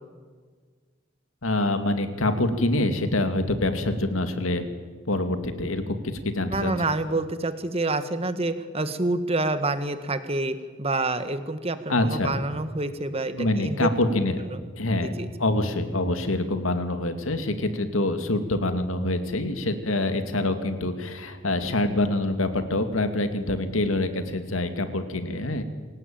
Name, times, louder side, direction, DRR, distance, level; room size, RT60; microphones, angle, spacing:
voice 1, 1.4-4.7 5.1-6.7 11.9-12.3 13.3-14.4 14.8-25.6, left 2 dB, 90° left, 8 dB, 2.4 m, -25 dB
voice 2, 6.5-13.9 14.4-14.6 15.0-15.3, right 2 dB, 30° right, 10 dB, 1.6 m, -27 dB
26.5 x 17.5 x 8.9 m, 1.5 s
head